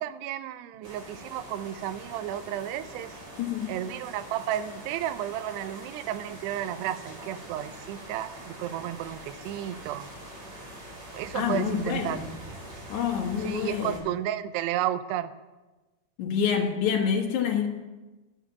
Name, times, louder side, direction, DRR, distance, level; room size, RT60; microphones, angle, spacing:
voice 1, 0.0-3.1 3.7-10.1 11.1-12.2 13.4-15.3, right 12 dB, 85° right, 12 dB, 2.7 m, -32 dB
sound 1, 0.8-14.0, right 1 dB, 45° right, 6.1 m, -44 dB
voice 2, 3.3-3.8 11.3-12.3 12.9-14.0 16.2-17.7, left 7 dB, 65° left, 0 dB, 2.0 m, -27 dB
11.0 x 7.5 x 7.1 m, 1.2 s
omnidirectional pair, 4.7 m